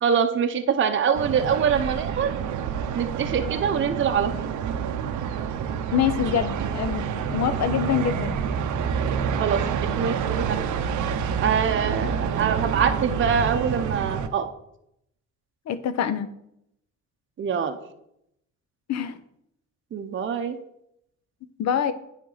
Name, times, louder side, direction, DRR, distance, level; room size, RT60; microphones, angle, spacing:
voice 1, 0.0-2.3 2.9-4.3 9.4-10.6 11.4-14.5 17.4-17.8 19.9-20.6, right 7 dB, 40° right, 6 dB, 0.7 m, -24 dB
sound 1, 1.1-14.3, right 7 dB, 80° right, 0.7 m, -28 dB
voice 2, 5.9-8.4 15.7-16.3 18.9-19.2 21.6-21.9, left 9 dB, 60° left, 11 dB, 0.7 m, -25 dB
9.4 x 4.5 x 4.0 m, 0.77 s
cardioid pair, 90°, 30 cm